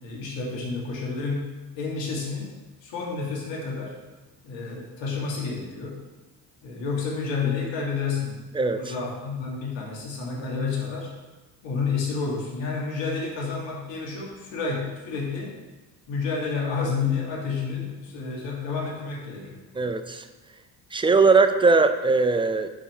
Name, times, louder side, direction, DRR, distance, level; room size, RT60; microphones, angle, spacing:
voice 1, 0.0-1.5 1.8-2.5 2.8-3.9 4.4-6.0 6.6-8.5 8.7-11.1 11.6-15.6 16.1-19.6, left 4 dB, 65° left, -2 dB, 2.0 m, -30 dB
voice 2, 8.5-8.9 19.8-20.3 20.9-22.7, right 4 dB, 10° right, 9 dB, 0.5 m, -20 dB
5.6 x 4.8 x 5.3 m, 1.2 s
hypercardioid pair, 55°, 48 cm